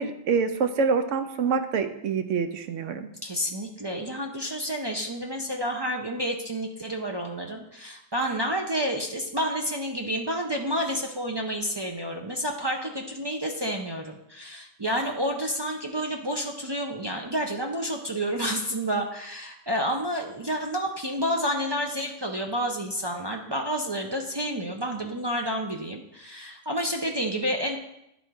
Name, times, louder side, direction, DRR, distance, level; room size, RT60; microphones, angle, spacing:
voice 1, 0.0-3.1, right 5 dB, 75° right, 8 dB, 1.0 m, -26 dB
voice 2, 3.2-27.8, equal, 40° right, 1 dB, 0.3 m, -29 dB
10.5 x 3.8 x 4.6 m, 0.85 s
omnidirectional pair, 1.3 m